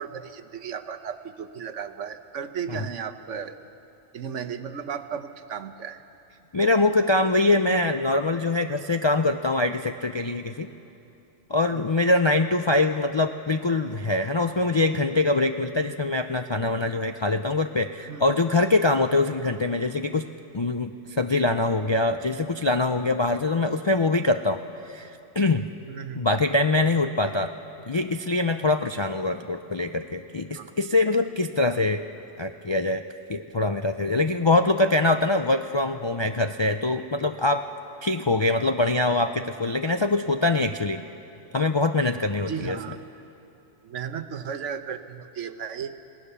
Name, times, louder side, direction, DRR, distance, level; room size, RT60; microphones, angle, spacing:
voice 1, 0.0-3.6 4.1-6.0 11.7-11.9 18.1-18.2 19.0-19.1 25.9-26.3 27.2-27.3 30.5-30.7 42.5-43.0 43.8-45.9, right 7 dB, 80° right, 8 dB, 1.3 m, -35 dB
voice 2, 6.5-10.7 11.5-20.3 20.5-24.6 24.9-25.7 26.2-27.5 27.9-32.0 32.4-33.0 33.3-37.6 38.0-41.0 41.5-42.8, left 2 dB, 45° left, 6 dB, 0.3 m, -23 dB
29.5 x 17.5 x 6.8 m, 2.8 s
omnidirectional pair, 1.3 m